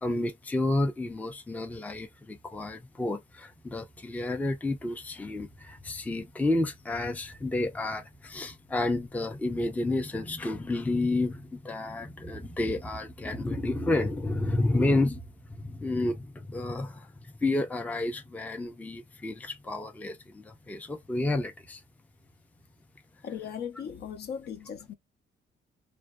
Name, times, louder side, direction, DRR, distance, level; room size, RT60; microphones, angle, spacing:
voice 1, 0.0-21.8, left 2 dB, 10° left, 0.4 m, -30 dB
voice 2, 23.2-24.9, left 7 dB, 55° left, 0.5 m, -38 dB
2.5 x 2.1 x 2.2 m
cardioid pair, 90°, 20 cm